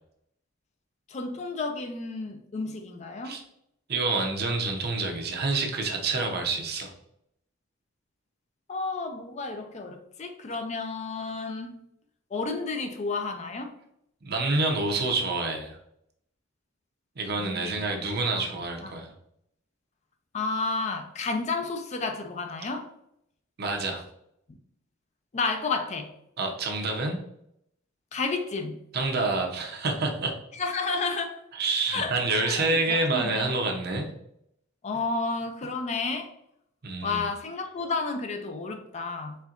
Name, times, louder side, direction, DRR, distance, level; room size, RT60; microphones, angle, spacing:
voice 1, 1.1-3.4 8.7-11.8 12.3-13.8 17.3-18.0 18.3-18.5 18.8-19.0 20.3-22.9 25.3-26.1 28.1-28.8 30.6-31.4 31.9-33.5 34.8-36.3 37.0-39.4, left 3 dB, 35° left, 0.4 m, -31 dB
voice 2, 3.9-6.9 14.2-15.8 17.2-19.1 23.6-24.0 26.4-27.2 28.9-30.3 31.5-34.1 36.8-37.2, right 3 dB, 55° right, 0.7 m, -27 dB
4.4 x 3.4 x 2.5 m
head